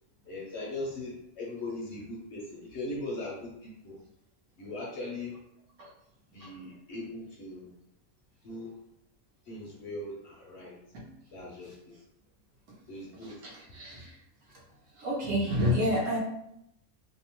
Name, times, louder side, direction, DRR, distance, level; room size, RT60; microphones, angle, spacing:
voice 1, 0.2-4.0 4.6-5.4 6.3-7.7 8.4-8.8 9.5-10.8 11.3-11.9 12.9-13.4 13.7-13.8, left 2 dB, 65° left, -3 dB, 0.7 m, -39 dB
voice 2, 13.1-14.1 15.0-16.2, equal, 65° right, -3 dB, 1.0 m, -29 dB
2.7 x 2.1 x 2.9 m, 0.79 s
omnidirectional pair, 1.5 m